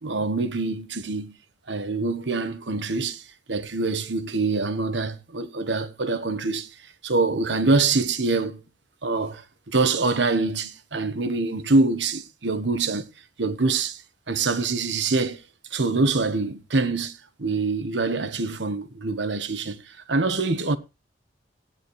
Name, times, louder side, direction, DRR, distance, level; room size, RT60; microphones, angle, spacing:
voice 1, 0.0-1.4 1.7-6.8 7.0-8.6 9.0-13.1 13.4-14.0 14.3-15.4 15.7-20.8, right 3 dB, 80° right, 1.2 m, -25 dB
16.0 x 10.0 x 3.1 m
head